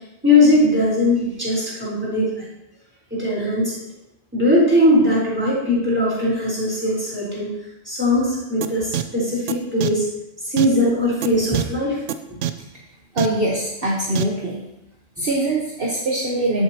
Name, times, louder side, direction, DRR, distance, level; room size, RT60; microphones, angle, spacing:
voice 1, 0.2-2.3 3.1-3.7 4.3-7.5 7.8-10.0 10.4-12.0, left 1 dB, 10° right, -7 dB, 4.3 m, -19 dB
sound 1, 8.6-8.7 8.9-9.0 9.5-9.6 9.8-9.9 10.6-10.7 11.2-11.3 11.5-11.6 12.1-12.2 12.4-12.5 13.2-13.3 14.1-14.2, right 11 dB, 70° right, 0.9 m, -23 dB
voice 2, 13.1-14.7 15.2-16.6, right 1 dB, 50° right, -3 dB, 1.4 m, -22 dB
14.5 x 7.7 x 2.9 m, 0.89 s
omnidirectional pair, 1.3 m